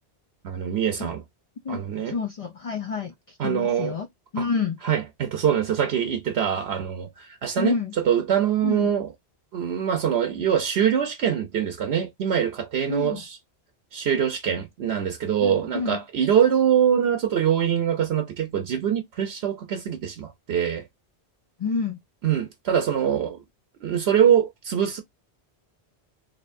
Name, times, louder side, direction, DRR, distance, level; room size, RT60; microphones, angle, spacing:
voice 1, 0.4-1.2 1.7-2.1 3.4-3.9 4.4-4.5 4.8-9.1 9.5-13.4 13.9-20.9 22.2-23.4 23.8-25.0, right 9 dB, 75° right, 0.9 m, -24 dB
voice 2, 1.6-4.1 4.3-4.8 7.6-7.9 8.6-8.9 12.9-13.2 15.4-16.0 21.6-22.0, left 5 dB, 50° left, 0.4 m, -29 dB
4.2 x 3.2 x 2.5 m
omnidirectional pair, 1.1 m